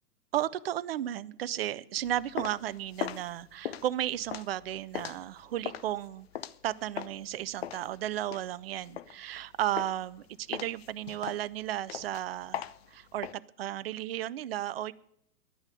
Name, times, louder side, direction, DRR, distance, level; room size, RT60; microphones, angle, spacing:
voice 1, 0.3-6.3 6.6-14.9, right 12 dB, 40° right, 16 dB, 0.5 m, -34 dB
sound 1, 2.0-7.3 7.6-9.4 9.8-10.2 10.5-13.3, left 11 dB, 40° left, 0.6 m, -39 dB
10.0 x 9.6 x 9.6 m, 0.75 s
figure-of-eight pair, 115°, 48 cm